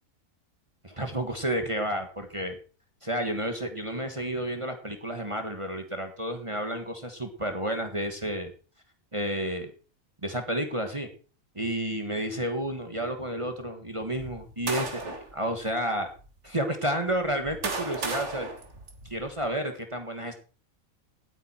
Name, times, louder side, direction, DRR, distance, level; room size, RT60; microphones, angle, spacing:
voice 1, 0.8-2.6 3.0-8.5 9.1-9.7 10.2-11.1 11.5-16.1 16.4-18.5 19.1-20.3, right 1 dB, 25° right, 6 dB, 1.6 m, -31 dB
sound 1, 14.2-15.3 16.1-16.2 17.1-19.5, right 3 dB, 55° right, 2.1 m, -35 dB
17.0 x 9.2 x 4.5 m, 0.38 s
omnidirectional pair, 1.4 m